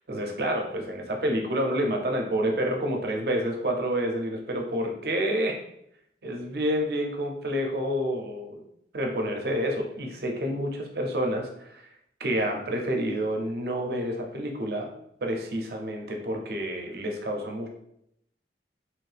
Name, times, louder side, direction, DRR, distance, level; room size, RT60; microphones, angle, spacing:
voice 1, 0.1-5.6 6.2-8.6 8.9-11.8 12.2-14.9 15.2-17.7, equal, 60° right, 2 dB, 0.6 m, -28 dB
3.0 x 2.7 x 3.3 m, 0.75 s
head